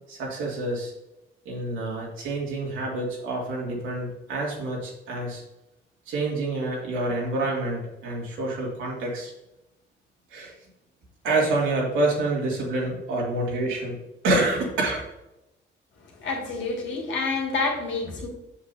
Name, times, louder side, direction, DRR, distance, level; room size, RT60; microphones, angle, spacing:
voice 1, 0.1-0.9 1.5-5.4 6.1-9.3 10.3-10.5 11.2-14.0 14.2-15.0, right 2 dB, 90° right, -3 dB, 2.4 m, -27 dB
voice 2, 16.2-18.3, left 3 dB, 75° left, -1 dB, 2.1 m, -28 dB
7.5 x 6.7 x 2.7 m, 0.94 s
cardioid pair, 90°, 20 cm